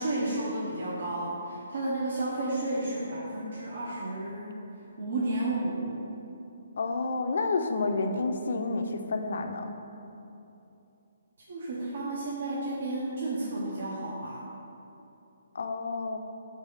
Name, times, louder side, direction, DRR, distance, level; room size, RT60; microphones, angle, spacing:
voice 1, 0.0-4.6 5.0-6.0 11.5-14.4, right 2 dB, 65° right, -6 dB, 0.6 m, -32 dB
voice 2, 6.8-9.7 15.5-16.2, left 3 dB, 65° left, 6 dB, 0.4 m, -29 dB
3.4 x 3.2 x 4.8 m, 2.8 s
hypercardioid pair, 160°, 0 cm